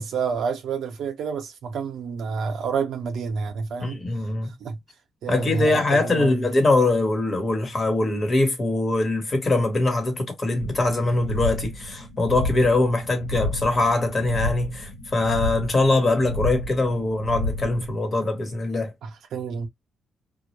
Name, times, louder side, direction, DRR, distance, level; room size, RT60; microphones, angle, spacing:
voice 1, 0.0-4.0 4.4-4.8 5.2-6.5 19.0-19.7, right 5 dB, 70° right, 0.7 m, -29 dB
voice 2, 3.8-4.5 5.3-18.9, left 2 dB, 35° left, 1.1 m, -22 dB
sound 1, 10.6-18.0, left 1 dB, 70° left, 1.0 m, -31 dB
2.2 x 2.0 x 2.9 m
cardioid pair, 90°, 0 cm